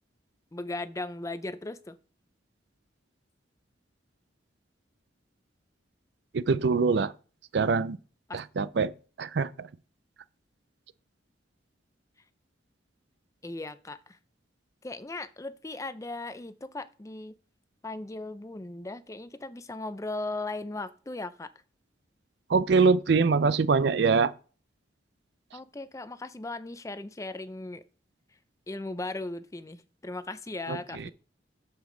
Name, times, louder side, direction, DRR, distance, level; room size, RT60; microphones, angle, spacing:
voice 1, 0.5-2.0 8.3-8.4 13.4-14.2 14.8-17.3 17.8-21.5 25.5-27.8 28.7-31.1, left 2 dB, 15° left, 0.4 m, -37 dB
voice 2, 6.3-7.1 7.5-8.0 8.3-8.9 9.2-9.7 22.5-24.3 30.7-31.1, right 4 dB, 60° right, 0.4 m, -24 dB
8.0 x 7.2 x 3.8 m
head